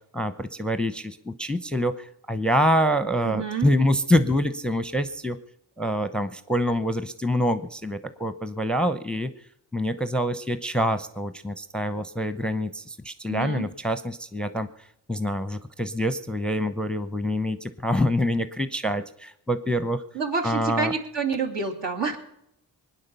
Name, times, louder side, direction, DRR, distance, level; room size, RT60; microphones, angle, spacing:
voice 1, 0.1-5.4 5.8-9.3 9.7-14.7 15.1-20.0 20.4-20.9, equal, ahead, 11 dB, 0.8 m, -26 dB
voice 2, 3.2-3.7 13.3-13.7 20.1-22.2, right 5 dB, 65° right, 2 dB, 2.8 m, -28 dB
20.5 x 9.6 x 6.8 m, 0.78 s
cardioid pair, 60°, 45 cm